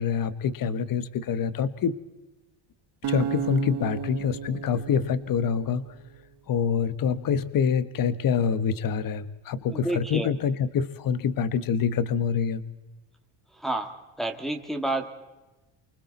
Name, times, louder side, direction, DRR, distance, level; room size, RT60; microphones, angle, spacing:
voice 1, 0.0-2.0 3.1-6.0 6.5-12.6, left 7 dB, 40° left, 14 dB, 1.1 m, -26 dB
sound 1, 3.0-6.2, right 9 dB, 55° right, 1.8 m, -34 dB
voice 2, 9.7-10.3 13.6-13.9 14.2-15.1, right 2 dB, ahead, 2 dB, 2.0 m, -29 dB
28.5 x 25.0 x 4.1 m, 1.1 s
cardioid pair, 125°, 49 cm